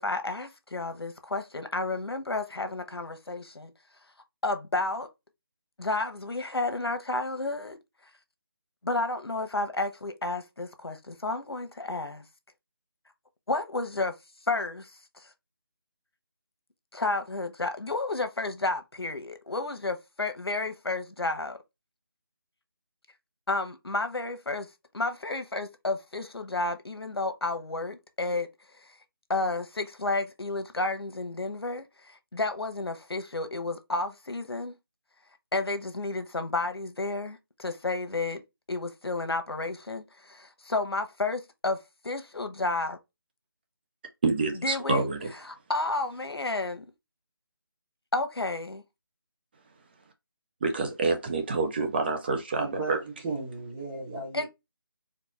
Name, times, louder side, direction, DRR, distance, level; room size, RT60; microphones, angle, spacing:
voice 1, 0.0-3.7 4.4-5.1 5.8-7.8 8.8-12.2 13.5-14.2 14.5-15.3 16.9-21.6 23.5-24.7 24.9-28.5 28.8-29.0 29.3-34.7 35.5-38.4 38.7-43.0 44.6-46.8 48.1-48.8 54.3-54.5, left 2 dB, 90° left, 1.1 m, -31 dB
voice 2, 44.2-45.2 50.6-53.0, right 3 dB, 25° right, 0.8 m, -27 dB
voice 3, 52.6-53.0 53.2-54.4, right 3 dB, 5° right, 0.4 m, -35 dB
4.4 x 2.3 x 4.2 m
figure-of-eight pair, 165°, 13 cm